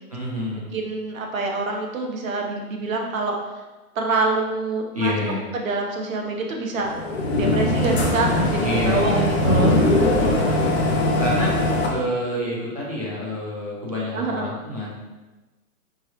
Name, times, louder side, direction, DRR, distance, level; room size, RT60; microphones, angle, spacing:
voice 1, 0.1-0.7 4.9-5.4 8.6-9.3 10.2-10.8 11.2-11.5 11.9-14.9, left 1 dB, 25° right, -7 dB, 0.5 m, -27 dB
voice 2, 0.7-3.4 3.9-5.1 5.5-6.9 7.3-9.8 14.1-14.5, right 3 dB, 60° right, 2 dB, 0.9 m, -26 dB
sound 1, 6.8-11.9, left 1 dB, 45° left, 0.6 m, -21 dB
4.7 x 3.3 x 2.9 m, 1.1 s
hypercardioid pair, 180°, 46 cm